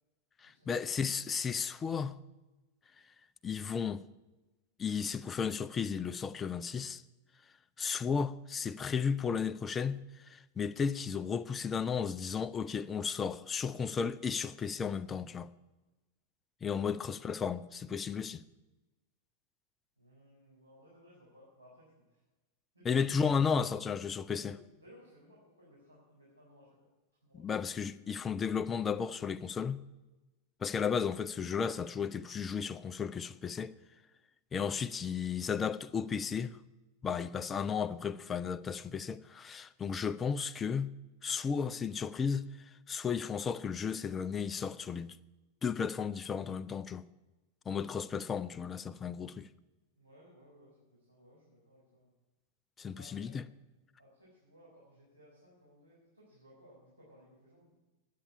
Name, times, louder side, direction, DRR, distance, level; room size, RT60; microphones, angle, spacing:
voice 1, 0.4-2.2 3.4-4.0 4.8-7.0 7.8-10.0 10.3-15.5 16.6-18.4 22.8-24.5 27.3-29.8 30.6-33.7 34.5-36.6 37.0-40.9 41.2-42.4 42.9-45.1 45.6-47.0 47.7-49.5 52.8-53.4, left 6 dB, 20° left, 0.5 m, -34 dB
voice 2, 20.0-22.2 22.7-23.5 24.3-26.9 27.2-27.5 50.0-52.1 52.9-53.3 54.0-57.8, equal, 85° right, 4.0 m, -60 dB
10.0 x 8.5 x 9.8 m
figure-of-eight pair, 90°, 0 cm